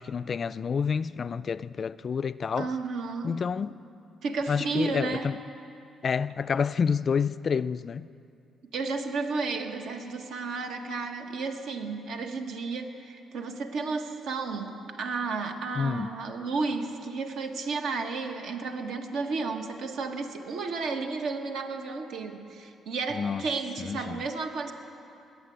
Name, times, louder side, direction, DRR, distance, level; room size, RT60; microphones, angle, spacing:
voice 1, 0.0-2.7 3.2-3.7 4.5-5.4 6.0-8.1 15.8-16.1 23.1-23.4 23.8-24.2, left 6 dB, 45° left, 0.3 m, -29 dB
voice 2, 2.6-3.4 4.2-5.3 8.7-24.7, right 4 dB, 80° right, 1.3 m, -32 dB
20.5 x 8.2 x 7.9 m
cardioid pair, 90°, 0 cm